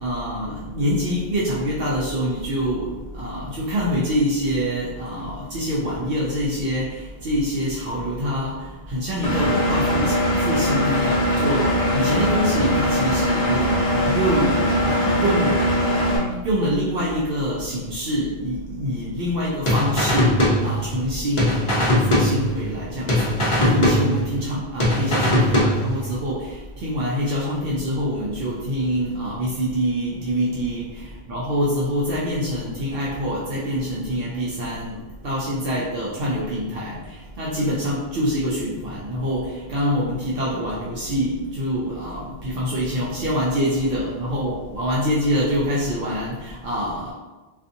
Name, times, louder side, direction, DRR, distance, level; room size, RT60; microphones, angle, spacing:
voice 1, 0.0-15.7 16.4-20.3 20.6-35.0 35.2-47.1, equal, 65° right, -5 dB, 0.7 m, -25 dB
Engine, 9.2-16.2, equal, 65° left, 0.8 m, -21 dB
sound 1, 19.7-21.1 21.4-22.8 23.1-24.5 24.8-26.1, left 1 dB, 40° left, 0.5 m, -20 dB
2.5 x 2.4 x 2.5 m, 1.2 s
omnidirectional pair, 1.1 m